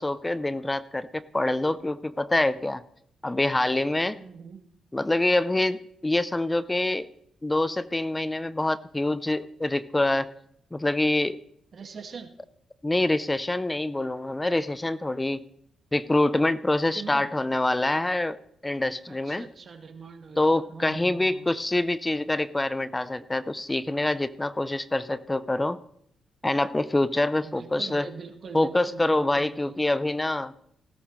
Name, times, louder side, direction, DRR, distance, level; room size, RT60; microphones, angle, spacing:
voice 1, 0.0-2.8 3.2-4.2 4.9-7.1 7.4-10.3 10.7-11.4 12.8-15.4 15.9-18.4 18.6-19.4 20.4-25.8 26.4-28.1 28.5-30.5, left 2 dB, 20° left, 15 dB, 0.6 m, -25 dB
voice 2, 4.2-4.6 11.7-12.3 16.9-17.3 19.1-21.5 27.4-29.8, right 5 dB, 55° right, 4 dB, 2.0 m, -42 dB
17.0 x 14.0 x 3.2 m, 0.71 s
supercardioid pair, 50°, 0 cm